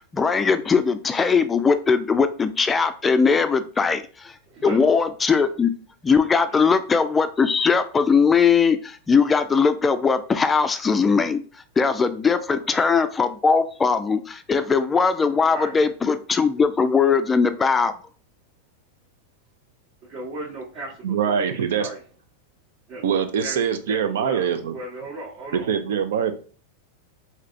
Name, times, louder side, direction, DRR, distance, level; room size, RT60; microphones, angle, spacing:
voice 1, 0.1-4.3 4.6-5.7 6.0-11.4 11.8-17.9, left 5 dB, 15° left, 10 dB, 0.3 m, -20 dB
voice 2, 4.5-4.8 6.6-6.8 12.7-12.8 15.5-15.7 20.1-22.0 22.9-23.6 23.9-25.7, right 2 dB, 45° right, -5 dB, 0.9 m, -36 dB
voice 3, 21.0-21.9 23.0-24.7 25.5-26.3, right 7 dB, 75° right, 8 dB, 0.5 m, -23 dB
3.2 x 2.7 x 2.5 m, 0.40 s
supercardioid pair, 130°, 0 cm